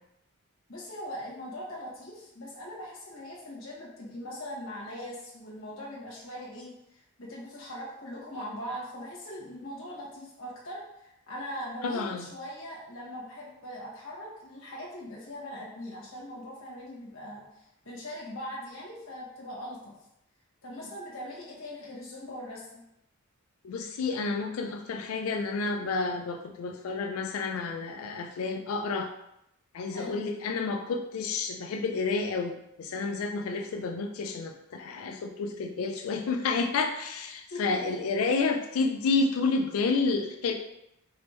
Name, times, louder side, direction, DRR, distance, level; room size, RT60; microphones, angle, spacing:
voice 1, 0.7-17.4 17.8-19.9 20.6-22.8 29.9-30.3 31.6-31.7 37.5-38.0, equal, 70° left, -4 dB, 1.2 m, -41 dB
voice 2, 11.8-12.3 23.6-29.1 29.7-40.5, left 4 dB, 90° left, 4 dB, 0.4 m, -30 dB
4.1 x 3.4 x 3.1 m, 0.83 s
head